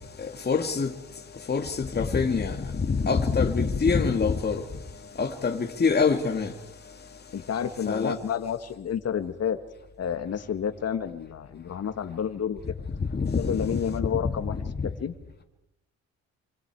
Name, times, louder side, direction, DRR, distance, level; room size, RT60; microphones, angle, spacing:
voice 1, 0.5-0.9 1.5-4.6 5.2-6.5 7.9-8.1 13.1-13.5, left 5 dB, 35° left, 2.2 m, -25 dB
voice 2, 7.3-9.6 10.0-12.6 13.4-14.6 14.8-15.1, left 8 dB, 55° left, 1.9 m, -30 dB
27.0 x 26.0 x 4.8 m
cardioid pair, 90°, 30 cm